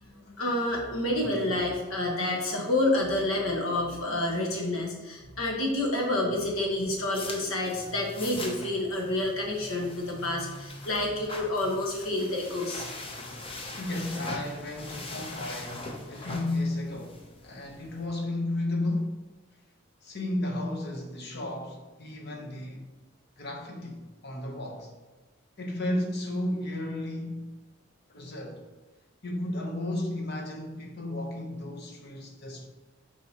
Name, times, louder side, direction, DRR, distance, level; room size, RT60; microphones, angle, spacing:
voice 1, 0.0-12.8, left 1 dB, 85° left, 1.5 m, -29 dB
sound 1, 6.7-18.1, left 2 dB, 25° left, 0.7 m, -41 dB
voice 2, 13.8-19.2 20.0-22.8 23.4-24.9 25.6-27.5 28.1-28.6 29.2-32.7, left 1 dB, 50° left, 1.0 m, -33 dB
7.6 x 4.7 x 2.9 m
head